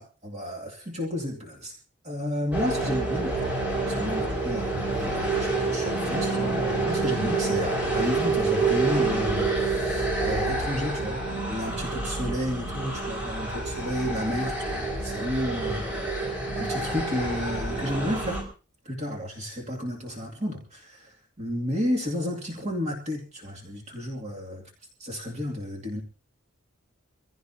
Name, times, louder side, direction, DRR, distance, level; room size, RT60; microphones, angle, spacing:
voice 1, 0.0-1.7 2.0-3.5 3.8-11.2 11.5-15.8 16.5-18.4 18.8-24.6 25.0-26.0, equal, 30° right, -1 dB, 2.5 m, -32 dB
sound 1, 2.5-18.4, right 3 dB, 5° right, 5.2 m, -28 dB
25.0 x 16.0 x 2.8 m, 0.35 s
head